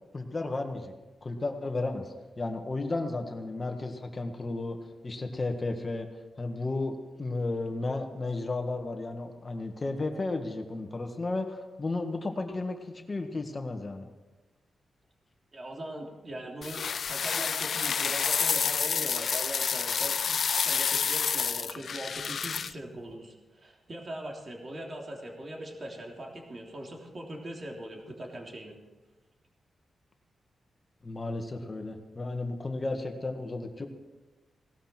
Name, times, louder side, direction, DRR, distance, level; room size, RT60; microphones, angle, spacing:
voice 1, 0.1-0.9 1.2-4.8 5.0-6.1 6.4-14.0 31.0-33.9, left 2 dB, 30° left, 5 dB, 1.8 m, -33 dB
voice 2, 15.5-28.8, right 1 dB, 40° right, 0 dB, 3.2 m, -41 dB
sound 1, 16.6-22.7, left 6 dB, 60° left, 0.4 m, -29 dB
18.5 x 12.5 x 4.5 m, 1.2 s
wide cardioid pair, 105°, 0 cm